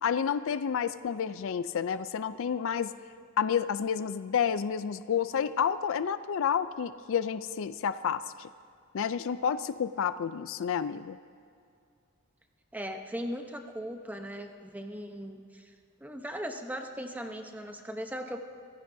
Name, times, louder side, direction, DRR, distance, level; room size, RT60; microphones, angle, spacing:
voice 1, 0.0-2.9 3.4-8.5 8.9-11.2, left 7 dB, 65° left, 13 dB, 0.4 m, -30 dB
voice 2, 12.7-15.7 16.0-18.4, equal, 5° right, 4 dB, 0.9 m, -38 dB
25.0 x 15.5 x 2.7 m, 2.3 s
head